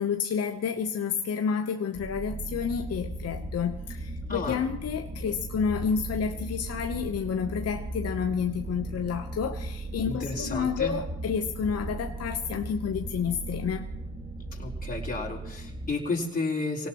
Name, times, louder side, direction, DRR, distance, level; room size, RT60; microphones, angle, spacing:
voice 1, 0.0-13.9, left 7 dB, 40° left, 5 dB, 1.0 m, -30 dB
sound 1, 1.9-15.9, right 2 dB, 15° right, 2.3 m, -37 dB
voice 2, 4.3-4.6 10.0-10.9 14.5-16.9, left 3 dB, 20° left, -2 dB, 4.3 m, -32 dB
26.0 x 18.0 x 3.1 m, 0.87 s
hypercardioid pair, 70°, 39 cm